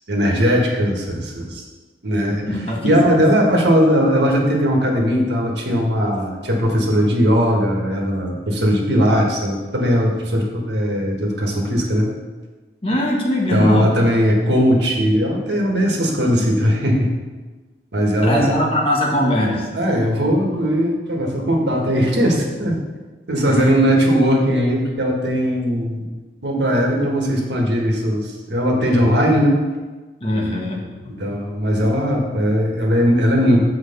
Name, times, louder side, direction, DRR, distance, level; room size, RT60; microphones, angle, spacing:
voice 1, 0.1-1.6 2.0-2.4 2.8-12.1 13.5-17.1 17.9-18.6 19.7-22.8 23.3-26.1 26.4-29.6 31.2-33.6, equal, 75° right, 0 dB, 1.5 m, -18 dB
voice 2, 2.5-3.1 12.8-13.9 16.1-16.4 18.2-19.7 23.4-23.7 30.2-31.3, left 1 dB, 30° left, -2 dB, 1.3 m, -21 dB
6.6 x 4.7 x 6.6 m, 1.3 s
head